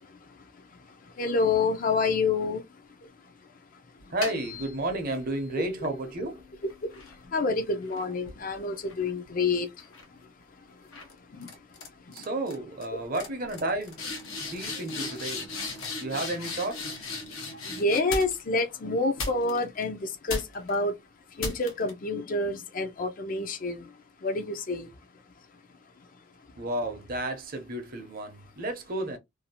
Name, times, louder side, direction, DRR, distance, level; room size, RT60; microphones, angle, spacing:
voice 1, 0.0-2.6 6.8-9.9 11.3-11.6 12.1-12.3 17.5-21.0 21.3-23.9 24.2-24.9, left 3 dB, 40° left, 0.5 m, -29 dB
sound 1, 4.0-5.2 5.8-9.4 9.8-10.2 10.9-11.1 11.4-11.9 12.1-12.5 12.8-12.9 13.1-18.6 19.2-19.8 20.3-20.8 21.4-21.9, left 3 dB, 90° left, 1.0 m, -37 dB
voice 2, 4.1-6.5 12.1-14.0 14.4-15.5 16.0-17.0 26.6-29.2, right 1 dB, 45° right, 0.7 m, -32 dB
2.6 x 2.4 x 2.7 m
head